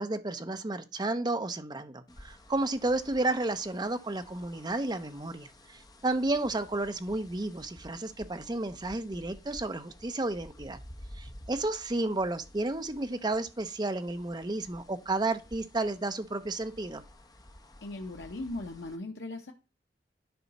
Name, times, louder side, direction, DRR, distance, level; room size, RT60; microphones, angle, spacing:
voice 1, 0.0-10.8 11.2-17.0, right 2 dB, 25° right, 0.7 m, -32 dB
sound 1, 2.1-19.0, left 1 dB, 20° left, 0.9 m, -53 dB
voice 2, 17.8-19.5, left 2 dB, 80° left, 0.8 m, -38 dB
10.5 x 4.8 x 4.1 m
head